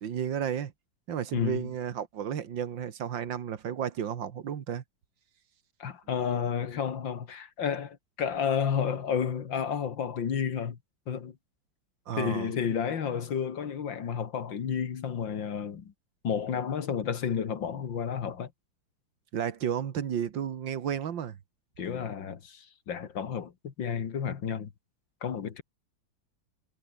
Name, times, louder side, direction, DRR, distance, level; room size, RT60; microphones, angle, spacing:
voice 1, 0.0-0.7 1.1-4.8 12.1-12.5 19.3-21.4, right 8 dB, 70° right, 2.1 m, -32 dB
voice 2, 1.3-1.7 5.8-10.8 11.1-11.4 12.2-15.9 16.2-18.5 21.8-24.7 25.2-25.6, left 7 dB, 70° left, 2.5 m, -31 dB
omnidirectional pair, 2.1 m